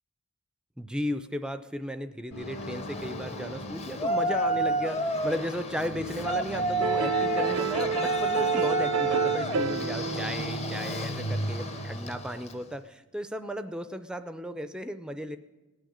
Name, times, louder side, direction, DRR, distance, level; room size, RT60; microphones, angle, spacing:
voice 1, 0.8-15.4, equal, 5° right, 11 dB, 0.4 m, -35 dB
sound 1, 2.3-9.9, equal, 70° left, 1.6 m, -42 dB
Yell, 2.4-12.6, right 1 dB, 30° left, 0.7 m, -31 dB
sound 2, 6.8-11.9, right 6 dB, 75° right, 0.6 m, -30 dB
18.0 x 6.4 x 9.8 m, 1.2 s
head